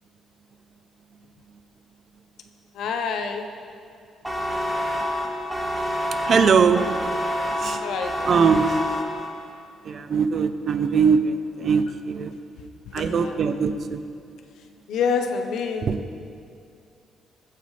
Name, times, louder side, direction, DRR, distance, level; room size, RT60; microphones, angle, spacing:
voice 1, 2.7-3.5 7.8-8.3 8.6-8.7 12.9-13.5 14.9-16.0, left 5 dB, 70° left, 5 dB, 1.1 m, -28 dB
sound 1, 4.2-9.5, equal, 5° right, 1.5 m, -27 dB
voice 2, 6.3-6.8 7.6-7.8 8.3-8.7 9.9-12.3 12.9-14.0 15.9-16.0, right 6 dB, 45° right, 9 dB, 0.7 m, -21 dB
22.5 x 9.3 x 3.4 m, 2.5 s
cardioid pair, 150°, 0 cm